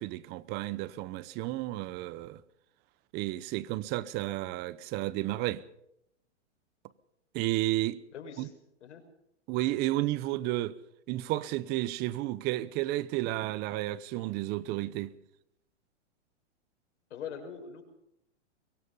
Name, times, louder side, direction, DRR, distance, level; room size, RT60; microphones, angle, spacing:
voice 1, 0.0-2.4 3.1-5.6 7.3-8.0 8.4-8.5 9.5-10.8 11.1-15.1, right 16 dB, 30° right, 0.9 m, -32 dB
voice 2, 8.1-8.5 8.8-9.0 17.1-17.8, left 7 dB, 80° left, 6.4 m, -42 dB
23.5 x 22.0 x 5.6 m
hypercardioid pair, 145°, 35 cm